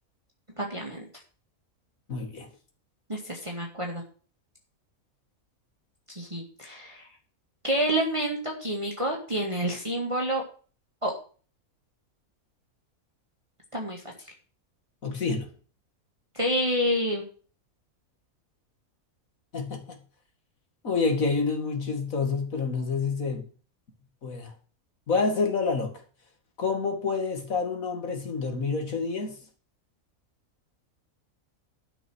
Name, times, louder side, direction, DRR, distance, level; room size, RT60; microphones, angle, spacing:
voice 1, 0.6-1.1 3.1-4.0 6.1-7.1 7.6-10.4 11.0-11.1 13.7-14.0 16.3-17.2, equal, 20° right, -1 dB, 2.0 m, -28 dB
voice 2, 2.1-2.5 15.0-15.5 19.5-20.0 20.8-23.4 24.2-24.5 25.1-25.9 26.6-29.4, left 4 dB, 70° left, 4 dB, 2.5 m, -28 dB
12.5 x 6.1 x 6.3 m, 0.40 s
omnidirectional pair, 1.5 m